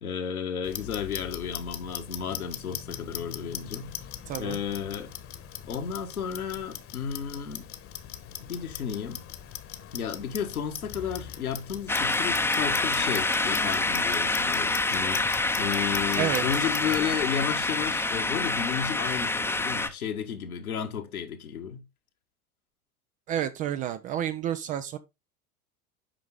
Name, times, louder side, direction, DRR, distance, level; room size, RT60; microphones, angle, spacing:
voice 1, 0.0-3.9 4.4-5.1 5.7-7.7 8.4-9.2 9.9-15.2 15.6-21.8, left 7 dB, 75° left, 1.8 m, -33 dB
Clock, 0.6-17.1, left 10 dB, 30° left, 1.2 m, -41 dB
voice 2, 4.3-4.6 16.2-16.4 23.3-25.0, right 10 dB, 20° right, 0.3 m, -30 dB
sound 1, 11.9-19.9, left 2 dB, 5° left, 0.7 m, -27 dB
8.8 x 5.7 x 3.7 m
figure-of-eight pair, 85°, 44 cm